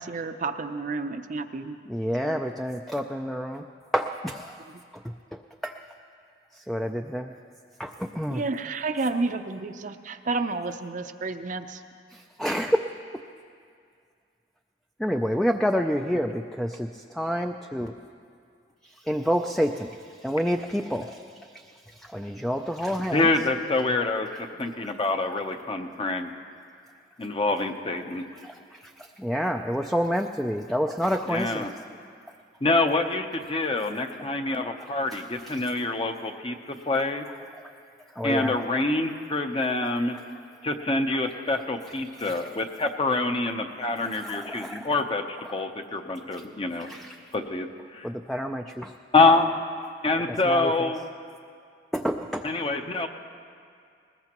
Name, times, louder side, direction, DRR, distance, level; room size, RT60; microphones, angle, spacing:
voice 1, 0.0-1.8 2.2-2.4 4.6-4.7 8.3-11.8, right 3 dB, 45° right, 8 dB, 0.6 m, -31 dB
voice 2, 1.9-3.6 3.9-4.6 5.6-5.7 6.7-7.3 7.8-8.4 12.4-12.8 15.0-16.9 17.2-17.9 19.1-19.9 20.2-21.2 22.0-23.3 28.4-28.5 29.2-31.7 35.5-35.6 38.2-38.5 42.2-42.4 44.1-44.9 46.9-47.1 48.0-48.9 50.5-50.9 51.9-52.5, equal, ahead, 4 dB, 0.4 m, -28 dB
voice 3, 23.1-26.3 27.2-28.2 31.3-31.7 32.6-37.3 38.2-40.2 40.6-46.9 47.3-48.1 49.1-49.6 50.0-51.1 52.4-53.1, left 3 dB, 30° left, 6 dB, 0.8 m, -26 dB
20.5 x 20.0 x 3.0 m, 2.3 s
head